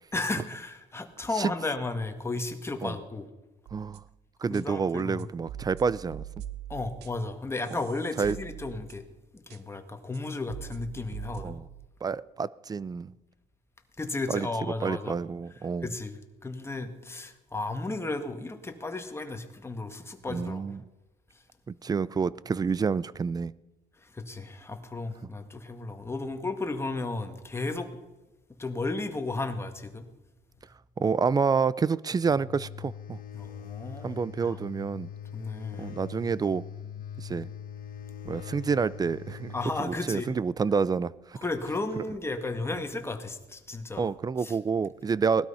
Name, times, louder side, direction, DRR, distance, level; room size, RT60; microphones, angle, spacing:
voice 1, 0.1-3.3 4.5-5.3 6.7-9.0 9.3-11.6 14.0-15.2 15.8-20.6 24.0-27.9 28.6-30.1 33.3-34.6 35.3-35.9 39.5-40.3 41.4-44.1 44.4-44.6, left 3 dB, 15° left, 1.8 m, -34 dB
voice 2, 3.7-4.0 4.4-6.2 7.7-7.8 8.2-8.4 11.4-11.7 12.0-13.2 14.3-14.5 14.8-15.9 20.3-20.8 21.7-23.5 31.0-33.2 34.0-35.1 35.8-36.6 37.2-37.5 38.2-39.5 39.8-41.4 42.0-42.1 44.0-45.5, right 5 dB, 20° right, 0.5 m, -28 dB
sound 1, 3.7-4.1 4.5-4.6 5.2-7.3 7.6-9.2 9.5-9.6 10.1-10.2 10.5-11.9, right 11 dB, 80° right, 1.0 m, -43 dB
sound 2, 32.2-39.9, left 8 dB, 55° left, 1.6 m, -42 dB
19.5 x 12.5 x 5.7 m
cardioid pair, 110°, 17 cm